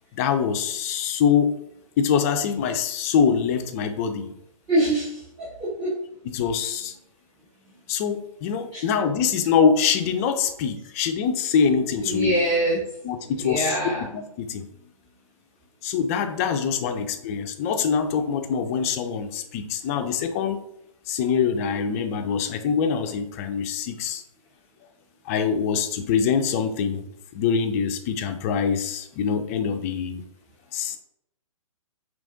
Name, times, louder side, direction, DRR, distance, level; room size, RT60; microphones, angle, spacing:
voice 1, 0.1-1.6 2.0-4.3 6.3-7.0 7.9-12.3 13.0-13.8 14.1-14.6 15.8-20.6 21.1-24.2 25.3-27.1 27.3-30.2 30.7-31.0, left 6 dB, 25° left, 7 dB, 0.4 m, -24 dB
voice 2, 4.7-6.0 8.7-8.8 12.0-12.8 13.4-14.0, right 1 dB, 30° right, -8 dB, 1.2 m, -24 dB
4.7 x 3.1 x 2.6 m, 0.78 s
figure-of-eight pair, 130°, 18 cm